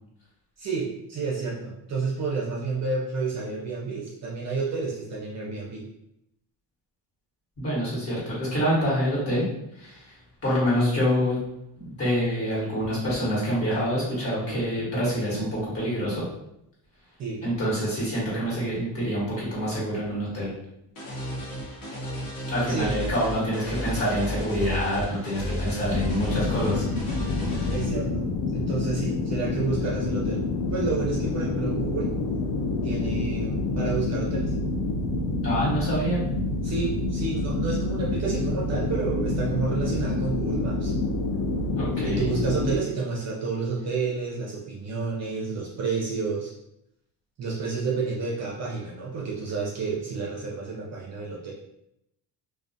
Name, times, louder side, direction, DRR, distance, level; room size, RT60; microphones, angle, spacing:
voice 1, 0.6-5.9 17.2-17.4 22.7-23.0 27.7-28.3 28.5-30.5 30.7-32.1 32.8-34.5 36.6-40.9 42.0-46.5 47.4-51.5, right 4 dB, 40° right, -3 dB, 0.5 m, -30 dB
voice 2, 7.6-9.5 9.7-10.1 10.4-11.4 11.8-16.2 17.4-20.5 22.5-26.8 35.4-36.2 41.7-42.3, equal, 35° left, -7 dB, 1.2 m, -26 dB
sound 1, 21.0-27.8, equal, 50° left, 0.9 m, -33 dB
sound 2, 25.9-42.8, left 2 dB, 80° left, 0.5 m, -27 dB
2.4 x 2.2 x 2.5 m, 0.81 s
cardioid pair, 125°, 42 cm